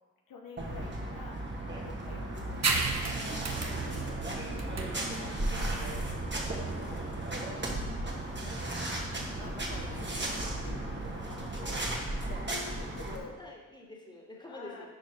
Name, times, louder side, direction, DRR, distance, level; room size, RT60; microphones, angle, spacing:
voice 1, 0.3-1.4 1.8-4.2 4.6-6.0 6.5-7.1 8.1-11.9 12.3-13.4 14.5-14.9, left 4 dB, 65° left, 1 dB, 1.1 m, -49 dB
sound 1, 0.6-13.2, right 1 dB, 30° right, 2.2 m, -35 dB
sound 2, 2.6-9.7, right 4 dB, 45° right, 1.2 m, -35 dB
voice 2, 11.6-11.9 13.3-14.9, left 2 dB, 10° left, -1 dB, 2.5 m, -48 dB
10.5 x 4.6 x 4.7 m, 1.2 s
supercardioid pair, 40°, 36 cm